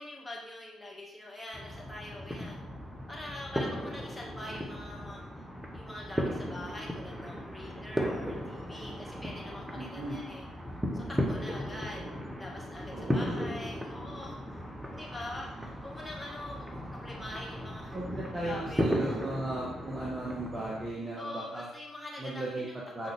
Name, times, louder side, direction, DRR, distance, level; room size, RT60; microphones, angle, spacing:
voice 1, 0.0-2.6 3.1-5.2 5.7-10.5 10.9-12.1 12.4-14.6 14.9-19.2 21.2-23.1, left 1 dB, 10° left, -3 dB, 1.9 m, -44 dB
sound 1, 1.5-20.9, equal, 5° right, 1.0 m, -36 dB
voice 2, 9.7-10.2 11.9-12.2 12.9-13.3 17.9-21.7 22.2-22.7 22.9-23.1, right 1 dB, 25° right, -5 dB, 1.5 m, -36 dB
7.9 x 3.8 x 3.5 m, 0.88 s
figure-of-eight pair, 45°, 0 cm